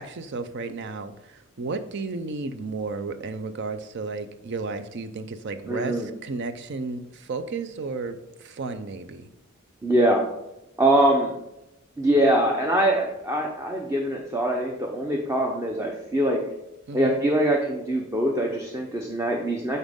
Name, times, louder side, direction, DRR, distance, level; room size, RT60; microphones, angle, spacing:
voice 1, 0.0-9.3 16.9-17.2, right 3 dB, 55° right, 10 dB, 0.5 m, -33 dB
voice 2, 5.7-6.1 9.8-10.2 10.8-11.3 12.0-16.4 16.9-19.8, right 1 dB, 15° right, 1 dB, 0.7 m, -23 dB
9.1 x 4.1 x 3.6 m, 0.89 s
head